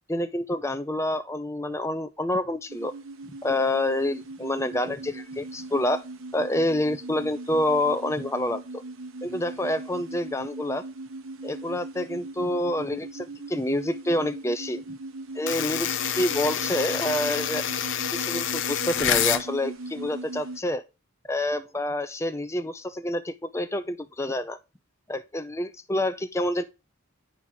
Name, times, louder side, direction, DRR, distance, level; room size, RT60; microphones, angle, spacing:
voice 1, 0.1-2.9 3.4-6.0 6.3-8.8 9.2-10.8 11.4-14.8 15.4-17.6 18.1-20.8 21.3-24.6 25.1-26.6, left 1 dB, 15° left, 0.6 m, -27 dB
sound 1, 2.7-20.6, right 2 dB, 75° right, 1.0 m, -39 dB
sound 2, 15.5-19.5, left 9 dB, 60° left, 0.7 m, -27 dB
9.2 x 4.0 x 5.7 m
head